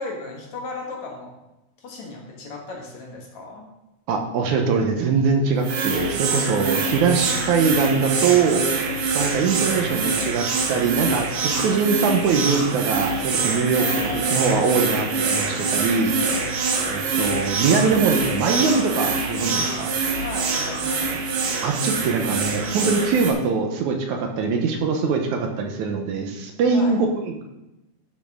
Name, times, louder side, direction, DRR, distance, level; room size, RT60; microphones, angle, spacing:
voice 1, 0.0-1.3 1.8-3.7 13.7-14.6 20.2-21.1 26.7-27.0, left 3 dB, 60° left, -1 dB, 2.9 m, -35 dB
voice 2, 4.1-8.7 9.1-13.8 14.1-16.2 16.9-19.9 21.6-27.4, right 5 dB, 75° right, 3 dB, 2.2 m, -22 dB
sound 1, 5.6-23.3, right 4 dB, 90° right, 2.8 m, -25 dB
12.0 x 6.3 x 3.7 m, 0.95 s
omnidirectional pair, 3.7 m